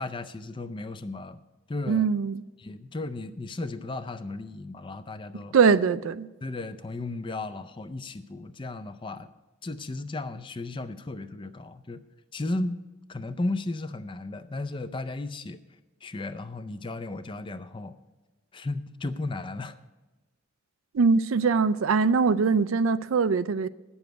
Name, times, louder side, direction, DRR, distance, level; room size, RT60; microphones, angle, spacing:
voice 1, 0.0-1.4 1.7-2.1 2.6-5.5 6.4-9.3 9.6-12.0 12.3-12.8 13.1-15.6 16.0-18.0 18.5-19.7, left 2 dB, 25° left, 0.4 m, -34 dB
voice 2, 1.9-2.4 5.5-6.3 20.9-23.7, right 5 dB, 75° right, 0.4 m, -22 dB
9.5 x 7.1 x 9.0 m
head